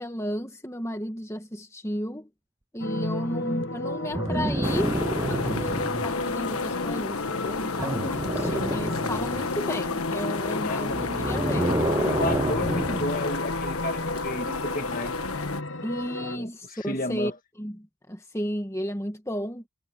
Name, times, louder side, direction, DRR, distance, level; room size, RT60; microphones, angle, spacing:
voice 1, 0.0-2.3 2.7-5.0 5.3-11.8 15.8-17.3 17.6-19.7, equal, 15° left, 1.9 m, -33 dB
sound 1, 2.8-16.4, left 2 dB, 60° left, 1.0 m, -33 dB
sound 2, 4.1-6.1 7.8-9.5 10.8-13.1 14.4-14.6, right 1 dB, 10° right, 0.4 m, -28 dB
sound 3, 4.6-15.6, left 4 dB, 85° left, 1.4 m, -31 dB
voice 2, 10.6-11.4 12.1-15.2 16.2-17.3, left 1 dB, 40° left, 2.0 m, -33 dB
head